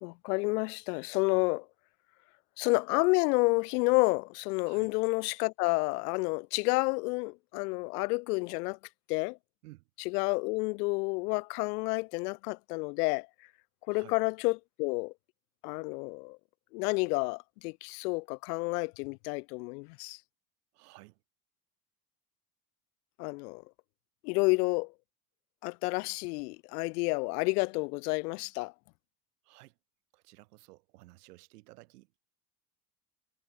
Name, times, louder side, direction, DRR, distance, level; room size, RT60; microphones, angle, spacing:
voice 1, 0.0-1.7 2.6-8.8 9.1-9.4 10.1-13.3 13.9-15.1 15.6-16.4 16.7-20.2 23.2-23.6 24.2-24.9 25.6-28.7, left 28 dB, 80° left, 0.5 m, -30 dB
voice 2, 20.7-21.2 29.4-29.8 30.1-32.2, right 20 dB, 85° right, 4.1 m, -55 dB
supercardioid pair, 80°, 45 cm